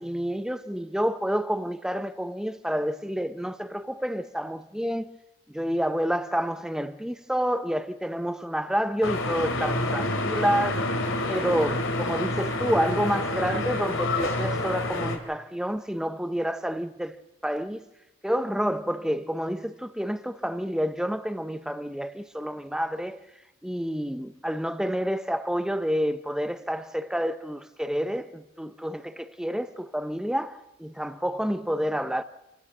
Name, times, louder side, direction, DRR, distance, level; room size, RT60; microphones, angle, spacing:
voice 1, 0.0-5.1 5.5-10.8 11.3-17.8 18.2-23.2 23.6-30.5 30.8-32.2, equal, 5° right, 0.8 m, -29 dB
sound 1, 9.0-15.2, left 2 dB, 65° left, 2.9 m, -28 dB
27.0 x 16.0 x 7.3 m
head